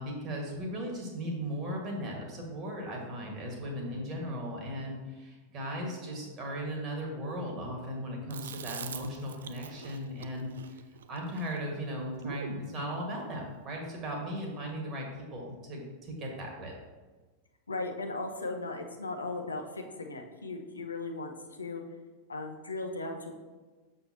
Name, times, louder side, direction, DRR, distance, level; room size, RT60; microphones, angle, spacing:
voice 1, 0.0-10.8 11.1-16.8, equal, 30° right, 0 dB, 1.8 m, -37 dB
Chewing mastication, 8.3-12.7, right 7 dB, 65° right, 0.3 m, -44 dB
voice 2, 17.7-21.8 22.3-23.3, left 3 dB, 75° left, 3 dB, 0.7 m, -37 dB
6.6 x 6.5 x 2.9 m, 1.3 s
figure-of-eight pair, 90°, 0 cm